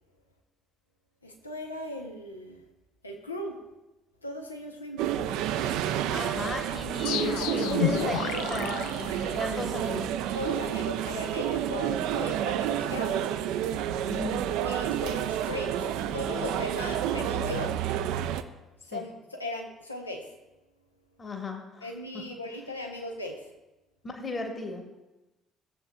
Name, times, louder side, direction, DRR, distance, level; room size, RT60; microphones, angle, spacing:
voice 1, 1.2-2.6 3.0-3.6 4.2-5.1 6.8-6.9 10.3-13.3 14.6-17.7 18.8-20.4 21.8-23.5, left 1 dB, 85° left, 2 dB, 0.8 m, -38 dB
sound 1, 5.0-18.4, right 10 dB, 60° right, 0.4 m, -30 dB
voice 2, 6.1-10.1 14.1-14.4 18.9-19.0 21.2-21.9 22.1-22.2 24.0-24.8, left 3 dB, 30° left, 3 dB, 1.4 m, -35 dB
sound 2, 7.0-9.8, left 10 dB, 65° left, 0.5 m, -31 dB
16.0 x 7.6 x 2.3 m, 1.0 s
figure-of-eight pair, 50°, 0 cm